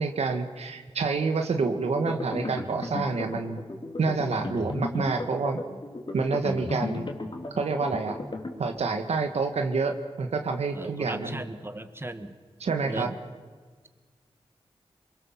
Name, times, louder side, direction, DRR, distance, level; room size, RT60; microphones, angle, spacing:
voice 1, 0.0-3.6 4.0-5.6 6.1-7.1 7.6-8.2 8.6-11.4 12.6-13.2, right 4 dB, 90° right, 5 dB, 1.7 m, -28 dB
sound 1, 1.8-8.5, left 2 dB, 50° left, 3.2 m, -35 dB
voice 2, 10.8-12.3 12.9-13.1, right 1 dB, 20° right, 9 dB, 1.7 m, -36 dB
24.0 x 22.0 x 7.4 m, 1.5 s
cardioid pair, 50°, 11 cm